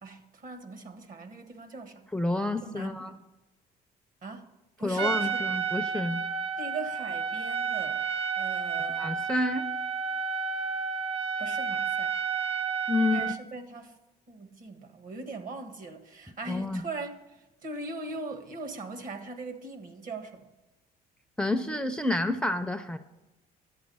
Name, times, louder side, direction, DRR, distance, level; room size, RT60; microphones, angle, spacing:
voice 1, 0.0-2.1 2.6-3.2 4.2-4.5 4.8-5.5 6.6-8.0 8.4-9.1 11.4-12.1 13.0-14.0 14.3-20.5, right 3 dB, 55° right, 1.6 m, -40 dB
voice 2, 2.1-3.1 4.8-6.2 9.0-9.7 12.9-13.3 16.5-16.8 21.4-23.0, left 2 dB, 5° left, 0.5 m, -29 dB
Trumpet, 5.0-13.4, right 6 dB, 35° right, 0.8 m, -31 dB
11.5 x 8.5 x 5.4 m
cardioid pair, 110°, 17 cm